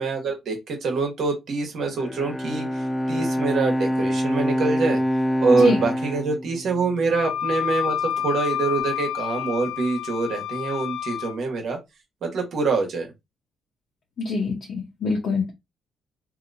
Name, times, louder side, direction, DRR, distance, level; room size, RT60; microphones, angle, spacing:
voice 1, 0.0-5.0 5.4-11.8 12.2-13.1, right 4 dB, 65° right, 1.4 m, -25 dB
Bowed string instrument, 1.9-7.3, equal, 15° left, 0.3 m, -26 dB
voice 2, 5.5-5.8 14.2-15.5, left 4 dB, 55° left, 1.0 m, -25 dB
Wind instrument woodwind instrument, 7.1-11.4, left 10 dB, 80° left, 0.5 m, -28 dB
2.9 x 2.9 x 2.7 m
cardioid pair, 90°, 0 cm